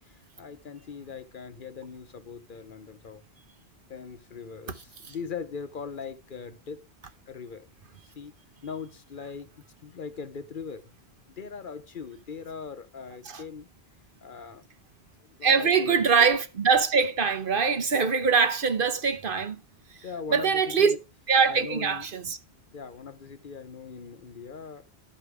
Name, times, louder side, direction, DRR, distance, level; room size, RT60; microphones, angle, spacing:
voice 1, 0.0-3.2 3.9-6.8 7.3-7.7 8.0-8.3 8.6-9.5 9.8-10.9 11.3-13.7 14.2-14.6 15.4-16.1 20.0-21.0 21.5-22.1 22.7-24.8, left 6 dB, 55° left, 0.9 m, -40 dB
voice 2, 15.4-19.6 20.3-21.0 21.3-22.4, right 5 dB, 55° right, 1.1 m, -23 dB
12.0 x 5.0 x 4.8 m
omnidirectional pair, 1.1 m